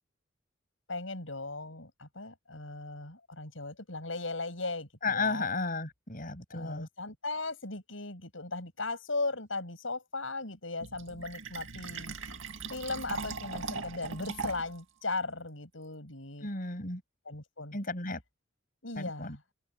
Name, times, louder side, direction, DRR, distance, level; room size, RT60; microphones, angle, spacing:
voice 1, 0.9-5.5 6.5-12.2 12.7-16.5 17.3-17.8 18.8-19.4, left 3 dB, 80° left, 7.0 m, -37 dB
voice 2, 5.0-6.9 16.4-17.0 17.7-18.2 19.0-19.4, left 3 dB, 45° left, 7.5 m, -33 dB
Fill (with liquid), 10.8-14.8, right 4 dB, 80° right, 2.1 m, -39 dB
open air
head